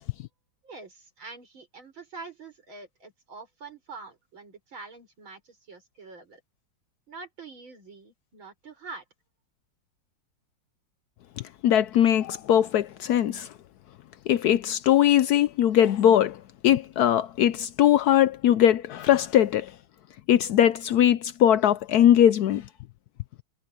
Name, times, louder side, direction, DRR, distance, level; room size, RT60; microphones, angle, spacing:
voice 1, 0.6-6.4 7.1-9.0, right 4 dB, 90° right, 6.3 m, -45 dB
voice 2, 11.6-13.5 14.3-19.7 20.3-22.6, left 10 dB, 75° left, 0.9 m, -20 dB
omnidirectional pair, 2.1 m